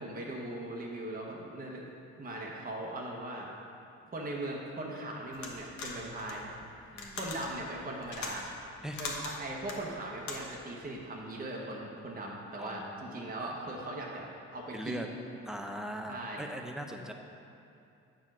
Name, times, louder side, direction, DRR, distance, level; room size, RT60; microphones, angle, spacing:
voice 1, 0.0-1.8 2.2-3.5 4.1-6.5 6.8-8.5 9.0-15.0 16.1-16.4, right 1 dB, 30° right, -2 dB, 1.0 m, -39 dB
sound 1, 5.3-10.7, left 3 dB, 70° left, 1.2 m, -42 dB
voice 2, 6.9-7.3 8.8-9.0 12.6-13.3 14.7-15.1 15.5-17.1, equal, ahead, 3 dB, 0.6 m, -40 dB
7.3 x 4.6 x 6.0 m, 2.6 s
cardioid pair, 90°, 30 cm